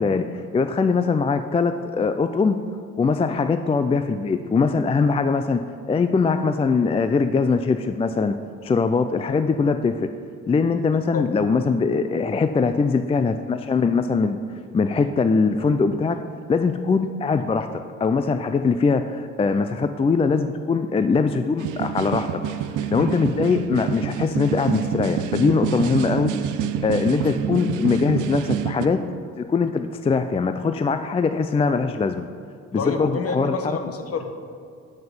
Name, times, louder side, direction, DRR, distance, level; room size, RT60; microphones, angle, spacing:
voice 1, 0.0-2.6 3.0-5.6 5.9-8.3 8.6-10.1 10.5-14.4 14.7-16.2 16.5-22.3 22.9-26.3 26.8-29.0 29.4-32.2 32.7-33.8, left 4 dB, 20° left, 9 dB, 0.3 m, -22 dB
sound 1, 21.6-28.9, right 8 dB, 85° right, 0.6 m, -27 dB
voice 2, 32.8-34.3, left 4 dB, 50° left, 6 dB, 1.1 m, -28 dB
7.8 x 5.8 x 7.1 m, 2.3 s
cardioid pair, 90°, 30 cm